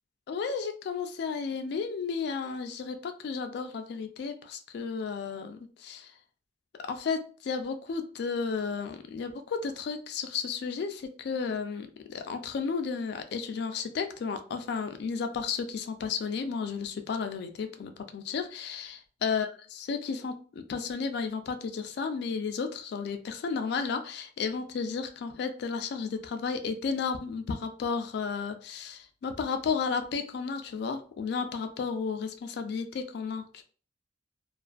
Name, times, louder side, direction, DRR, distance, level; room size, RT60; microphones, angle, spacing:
voice 1, 0.3-6.1 6.8-33.6, left 5 dB, 60° left, 8 dB, 0.3 m, -33 dB
2.4 x 2.4 x 2.2 m, 0.39 s
head